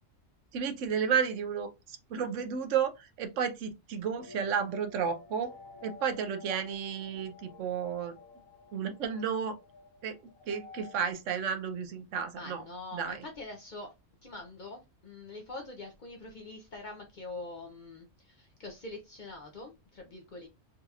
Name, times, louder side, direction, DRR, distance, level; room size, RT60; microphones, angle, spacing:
voice 1, 0.5-5.5 5.8-8.2 8.7-9.6 10.0-10.2 10.5-12.6 12.9-13.2, right 7 dB, 75° right, 0.9 m, -32 dB
sound 1, 4.2-11.1, left 4 dB, 80° left, 1.4 m, -51 dB
voice 2, 12.3-13.9 14.2-20.5, left 2 dB, 50° left, 0.6 m, -44 dB
3.9 x 2.8 x 2.3 m
omnidirectional pair, 1.4 m